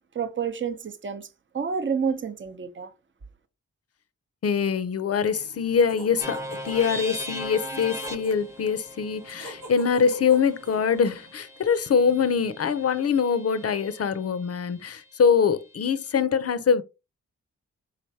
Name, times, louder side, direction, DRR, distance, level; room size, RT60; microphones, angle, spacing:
voice 1, 0.1-1.3 1.5-2.9, right 6 dB, 35° right, 0.7 m, -29 dB
voice 2, 4.4-16.8, left 6 dB, 50° left, 0.6 m, -24 dB
sound 1, 5.2-11.3, right 2 dB, 85° right, 1.1 m, -46 dB
sound 2, 6.2-14.1, equal, 10° right, 0.9 m, -39 dB
4.0 x 3.2 x 2.7 m
supercardioid pair, 40°, 32 cm